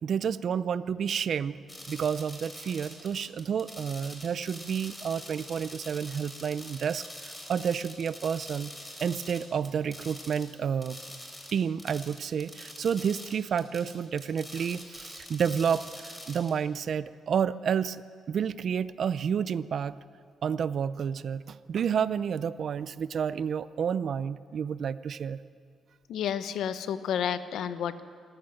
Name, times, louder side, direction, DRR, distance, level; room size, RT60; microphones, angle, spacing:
voice 1, 0.0-1.6 1.9-8.7 9.0-11.0 11.5-19.9 20.4-25.4, right 7 dB, 55° right, 16 dB, 0.6 m, -30 dB
sound 1, 1.7-10.5 10.8-16.5, left 1 dB, 10° left, 3.9 m, -45 dB
voice 2, 26.1-28.0, left 9 dB, 80° left, 12 dB, 1.0 m, -31 dB
26.5 x 14.0 x 7.8 m, 2.3 s
cardioid pair, 135°, 0 cm